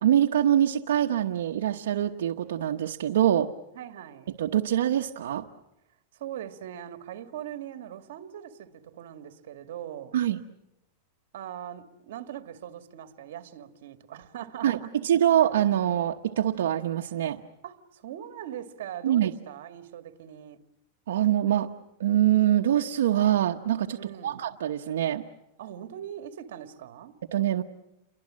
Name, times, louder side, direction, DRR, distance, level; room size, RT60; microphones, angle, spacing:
voice 1, 0.0-3.5 4.4-5.5 10.1-10.4 14.6-17.4 19.0-19.3 21.1-21.7 22.0-25.2 27.3-27.6, right 11 dB, 90° right, 1.0 m, -24 dB
voice 2, 3.7-4.3 6.1-10.2 11.3-14.9 17.6-20.6 23.9-24.4 25.6-27.1, right 10 dB, 70° right, 2.0 m, -41 dB
29.5 x 23.5 x 7.6 m
supercardioid pair, 160°, 0 cm